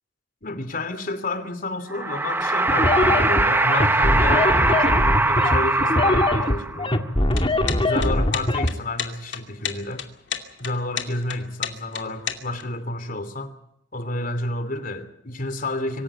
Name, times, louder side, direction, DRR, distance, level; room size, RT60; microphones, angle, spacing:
voice 1, 0.4-7.1 7.8-10.0 10.6-13.5 13.9-16.0, left 2 dB, 50° left, 2.9 m, -30 dB
sound 1, 1.9-7.0, right 2 dB, 10° right, 1.0 m, -21 dB
sound 2, 2.7-8.7, left 1 dB, 30° left, 1.9 m, -21 dB
sound 3, 7.2-12.6, left 8 dB, 65° left, 2.6 m, -31 dB
25.0 x 15.0 x 8.8 m
head